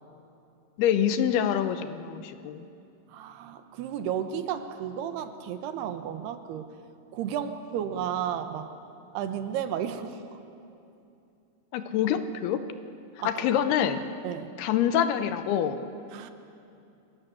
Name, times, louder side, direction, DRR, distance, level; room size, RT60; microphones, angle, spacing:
voice 1, 0.8-2.7 11.7-12.6 13.2-14.0 14.6-15.8, left 9 dB, 80° left, 10 dB, 2.9 m, -26 dB
voice 2, 3.1-6.7 7.1-8.7 9.1-10.2 13.2-13.6 14.2-14.5 16.1-16.3, right 9 dB, 80° right, 9 dB, 3.2 m, -33 dB
27.5 x 21.5 x 7.0 m, 2.6 s
omnidirectional pair, 4.6 m